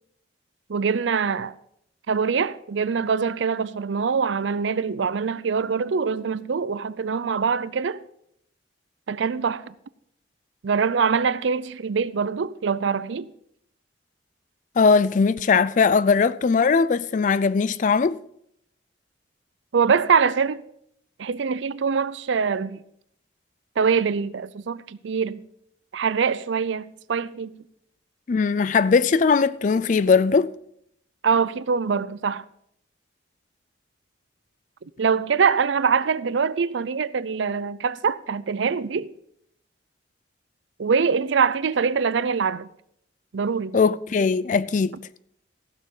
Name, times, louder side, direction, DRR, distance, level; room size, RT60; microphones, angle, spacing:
voice 1, 0.7-1.6 2.1-8.0 9.1-9.7 10.6-13.3 19.7-20.6 21.2-22.8 23.8-25.4 25.9-27.5 31.2-32.4 35.0-39.1 40.8-42.7 43.3-43.8, right 5 dB, 80° right, 0.5 m, -24 dB
voice 2, 14.8-18.2 28.3-30.5 43.7-44.9, left 5 dB, 40° left, 0.3 m, -20 dB
15.0 x 6.7 x 5.4 m
head